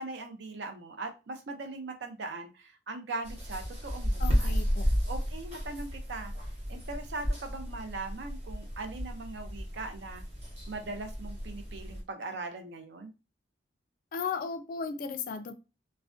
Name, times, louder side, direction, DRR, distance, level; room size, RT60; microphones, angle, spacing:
voice 1, 0.0-6.3 6.7-10.2 10.7-13.1, right 3 dB, 65° right, 0.5 m, -40 dB
sound 1, 3.2-12.0, equal, 35° right, 0.8 m, -33 dB
voice 2, 4.2-4.9 14.1-15.5, left 5 dB, 50° left, 0.3 m, -35 dB
2.4 x 2.1 x 2.4 m
head